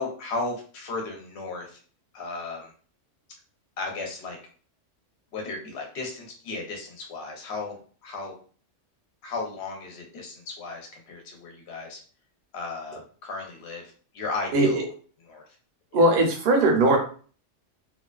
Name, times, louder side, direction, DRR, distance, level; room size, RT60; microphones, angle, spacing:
voice 1, 0.0-1.8 2.1-2.7 3.8-4.4 5.3-8.3 9.2-12.0 12.5-14.8 15.3-15.4 15.9-16.0, left 3 dB, 65° left, 1 dB, 0.9 m, -35 dB
voice 2, 14.5-14.9 15.9-17.0, right 2 dB, 55° right, 1 dB, 0.7 m, -19 dB
2.4 x 2.3 x 2.3 m, 0.41 s
omnidirectional pair, 1.3 m